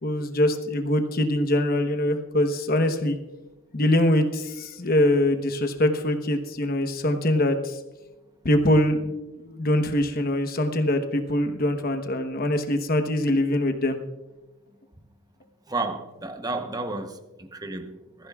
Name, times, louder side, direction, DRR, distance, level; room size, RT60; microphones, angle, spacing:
voice 1, 0.0-3.2 3.7-7.8 8.4-14.0, left 1 dB, 45° left, 1.0 m, -23 dB
voice 2, 15.7-18.3, right 3 dB, 20° right, 0.9 m, -32 dB
21.5 x 14.5 x 2.4 m
head